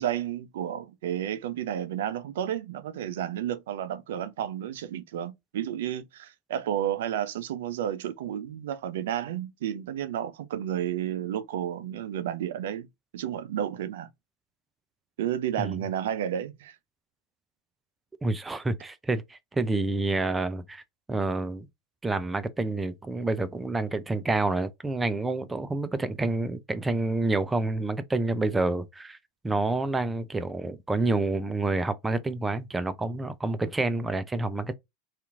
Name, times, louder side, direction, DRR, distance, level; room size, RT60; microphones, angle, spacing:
voice 1, 0.0-12.9 13.1-14.1 15.2-16.8, right 10 dB, 75° right, 0.4 m, -31 dB
voice 2, 18.2-20.8 21.1-21.7 22.0-29.2 29.4-34.7, right 2 dB, 15° right, 0.4 m, -28 dB
2.8 x 2.4 x 2.4 m
hypercardioid pair, 95°, 0 cm